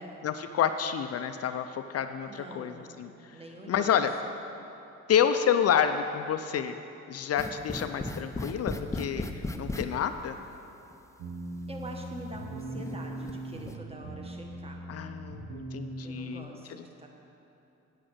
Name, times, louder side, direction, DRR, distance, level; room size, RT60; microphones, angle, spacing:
voice 1, 0.2-3.4 3.7-4.1 5.1-6.7 7.1-10.4 14.9-16.8, left 8 dB, 55° left, 8 dB, 0.5 m, -29 dB
voice 2, 2.3-4.0 11.7-14.8 16.0-17.1, right 1 dB, 20° right, 1 dB, 1.4 m, -45 dB
sound 1, 7.4-9.9 10.9-11.0 11.7-11.8 12.6-13.3 13.6-13.8, left 2 dB, 10° left, 0.6 m, -35 dB
sound 2, 11.2-16.4, right 1 dB, 80° right, 1.1 m, -40 dB
8.8 x 8.6 x 6.3 m, 2.9 s
cardioid pair, 90°, 30 cm